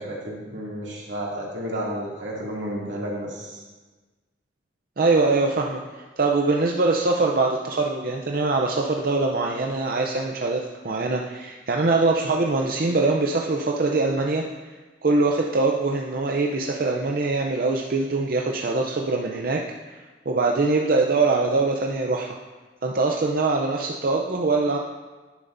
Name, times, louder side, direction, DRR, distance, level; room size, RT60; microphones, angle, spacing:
voice 1, 0.0-3.6, right 1 dB, 85° right, -4 dB, 2.5 m, -32 dB
voice 2, 5.0-14.7 15.0-20.0 20.3-22.4 22.8-24.8, right 3 dB, 50° right, 1 dB, 0.6 m, -23 dB
11.0 x 10.0 x 2.6 m, 1.3 s
head